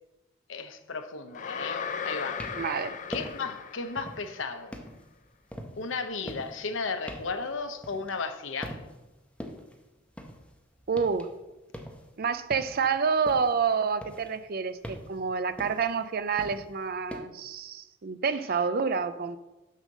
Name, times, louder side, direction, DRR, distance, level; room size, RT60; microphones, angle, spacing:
voice 1, 0.5-2.4 3.1-4.8 5.8-8.8, left 4 dB, 75° left, 0.8 m, -34 dB
sound 1, 1.3-4.4, left 6 dB, 40° left, 0.4 m, -37 dB
sound 2, 2.2-2.8 3.1-3.5 4.0-4.3 4.7-8.4 8.6-9.1 9.4-11.3 11.6-13.6 14.0-17.2, equal, 5° left, 0.8 m, -42 dB
voice 2, 2.5-3.0 10.9-11.3 12.2-19.4, right 5 dB, 50° right, 0.5 m, -28 dB
6.5 x 5.4 x 6.4 m
head